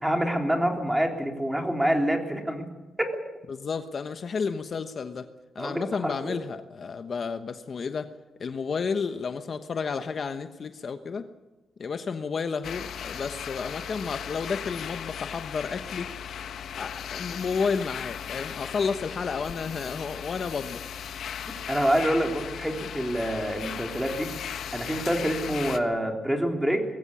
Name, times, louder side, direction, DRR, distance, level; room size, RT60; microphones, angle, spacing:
voice 1, 0.0-2.6 5.6-6.4 21.7-24.3 24.7-26.8, equal, 5° right, 3 dB, 3.6 m, -26 dB
voice 2, 3.5-5.3 5.5-8.1 8.4-11.3 11.8-16.1 16.8-20.9, left 5 dB, 50° left, 8 dB, 1.2 m, -31 dB
sound 1, 12.6-25.8, left 8 dB, 80° left, 1.3 m, -37 dB
21.5 x 16.5 x 8.5 m, 1.1 s
cardioid pair, 110°, 0 cm